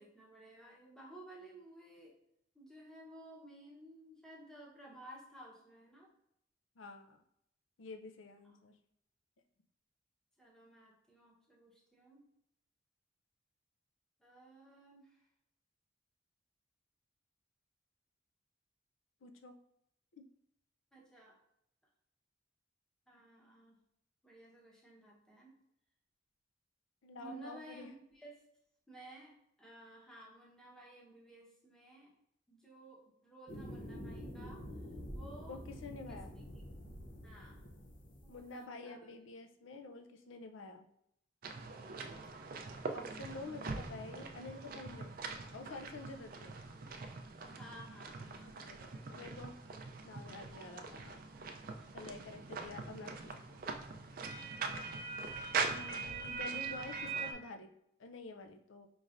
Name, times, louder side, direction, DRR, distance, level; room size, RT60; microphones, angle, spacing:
voice 1, 0.0-2.1 2.5-6.1 8.4-8.6 10.4-12.2 14.2-15.3 20.9-21.4 23.1-23.8 24.2-25.5 27.2-28.4 28.9-32.1 32.5-35.6 36.1-36.2 37.2-37.6 38.2-39.1 41.9-42.2 47.4-49.1 54.5-55.0, right 1 dB, 5° left, -4 dB, 0.9 m, -55 dB
voice 2, 6.8-7.2 7.8-8.7 19.2-19.6 20.1-20.2 27.0-27.9 35.5-36.3 38.3-40.8 42.9-45.1 45.5-46.6 48.7-49.6 50.0-51.2 51.9-53.6 55.7-57.7 58.0-58.9, left 3 dB, 90° left, 7 dB, 0.5 m, -49 dB
sound 1, 33.5-38.5, equal, 45° left, 0.7 m, -47 dB
sound 2, 41.4-57.3, right 4 dB, 50° right, 0.4 m, -42 dB
5.2 x 3.1 x 2.5 m, 0.77 s
head